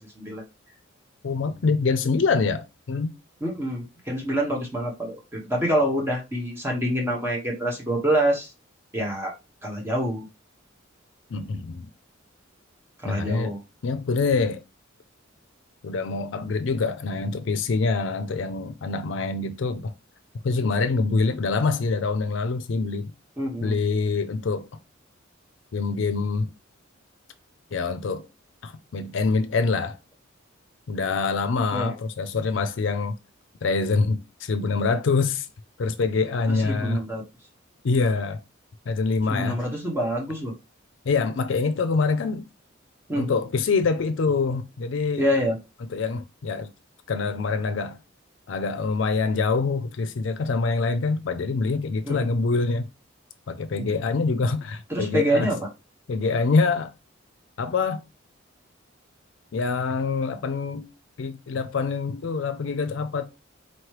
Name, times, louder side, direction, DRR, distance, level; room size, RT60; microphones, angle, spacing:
voice 1, 1.2-3.1 11.3-11.9 13.0-13.5 13.8-14.6 15.8-19.9 20.4-23.1 23.6-24.7 25.7-26.5 27.7-28.2 28.6-30.0 30.9-33.1 33.6-35.5 35.8-37.0 37.8-38.4 38.9-39.6 41.1-42.5 43.1-45.3 45.9-46.7 47.1-48.0 48.5-52.9 53.5-55.5 56.1-56.9 57.6-58.0 59.5-60.9 61.2-63.2, left 4 dB, 65° left, 0.4 m, -25 dB
voice 2, 3.4-8.5 8.9-9.3 9.6-10.3 13.0-13.6 23.4-23.8 31.7-31.9 36.5-37.2 39.3-40.5 43.1-43.3 45.2-45.6 52.0-52.3 53.8-53.9 54.9-55.6, right 1 dB, 10° right, 1.1 m, -26 dB
4.1 x 3.0 x 3.1 m
head